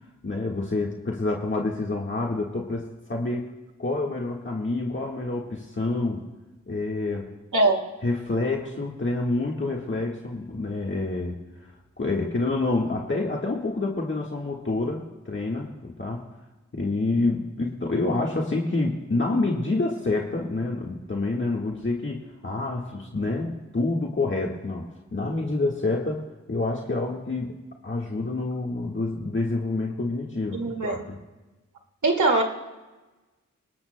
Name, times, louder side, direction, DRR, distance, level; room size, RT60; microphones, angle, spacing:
voice 1, 0.2-3.5 3.8-6.2 6.7-7.3 8.0-11.4 12.0-16.2 16.7-26.2 26.5-27.5 27.8-31.2, left 2 dB, 40° left, -2 dB, 1.6 m, -27 dB
voice 2, 30.5-31.0 32.0-32.4, right 2 dB, 80° right, 2 dB, 2.1 m, -21 dB
29.0 x 19.5 x 2.2 m, 1.2 s
wide cardioid pair, 80°, 29 cm